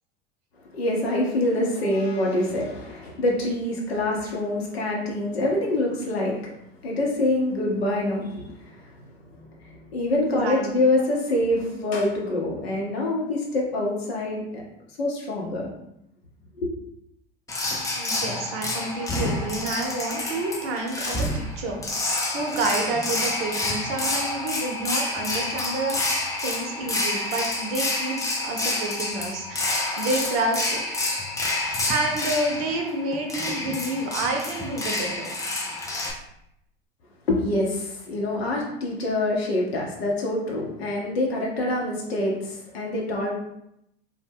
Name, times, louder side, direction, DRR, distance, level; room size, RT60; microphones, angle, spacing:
voice 1, 0.7-6.5 6.8-14.6 15.0-15.7 16.6-16.7 37.3-43.3, left 1 dB, 75° left, -2 dB, 0.8 m, -26 dB
voice 2, 10.3-10.8 17.9-26.1 26.4-30.8 31.4-31.6 31.9-35.4, right 2 dB, 45° right, 1 dB, 0.7 m, -29 dB
sound 1, 17.5-36.1, left 2 dB, 10° left, 0.4 m, -28 dB
2.2 x 2.1 x 3.4 m, 0.81 s
figure-of-eight pair, 75°, 31 cm